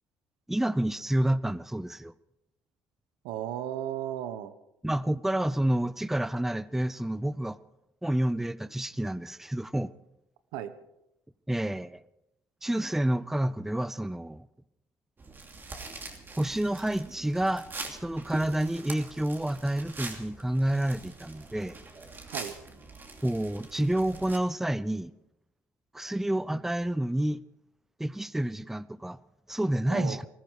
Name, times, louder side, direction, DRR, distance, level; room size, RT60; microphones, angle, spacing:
voice 1, 0.5-2.1 4.8-7.6 8.0-9.9 11.5-12.0 12.6-14.5 16.4-21.8 23.2-25.1 25.9-27.4 28.0-29.2 29.5-30.3, right 1 dB, 5° right, 0.5 m, -29 dB
voice 2, 3.2-4.5 10.5-10.7 22.3-22.5 29.9-30.2, right 11 dB, 85° right, 1.1 m, -35 dB
sound 1, 15.2-24.4, right 3 dB, 30° right, 2.8 m, -43 dB
20.5 x 14.0 x 4.8 m
supercardioid pair, 85°, 7 cm